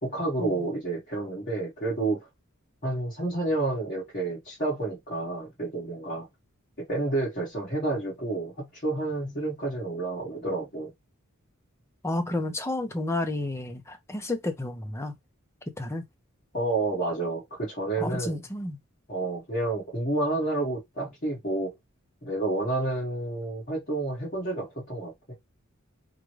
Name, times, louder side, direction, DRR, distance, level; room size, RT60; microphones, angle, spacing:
voice 1, 0.0-2.3 2.8-6.3 6.8-10.9 16.5-18.4 19.1-21.7 22.2-25.3, right 2 dB, 40° left, 1.8 m, -30 dB
voice 2, 12.0-15.1 15.8-16.0 18.0-18.8, left 2 dB, 15° left, 0.6 m, -31 dB
3.7 x 2.3 x 3.1 m
head